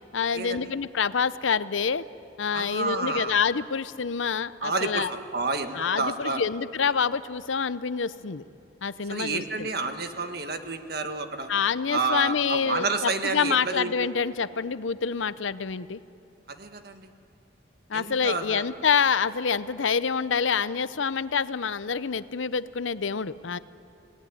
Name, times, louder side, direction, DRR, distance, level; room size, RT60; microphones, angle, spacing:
voice 1, 0.1-2.0 2.4-5.1 5.7-8.4 8.8-9.7 11.5-16.0 17.9-23.6, left 6 dB, 90° left, 15 dB, 0.7 m, -27 dB
voice 2, 2.5-3.4 4.6-6.4 9.1-11.5 11.9-13.9 16.5-17.1 17.9-18.6, right 3 dB, 55° right, 7 dB, 1.6 m, -30 dB
28.5 x 18.0 x 10.0 m, 2.8 s
head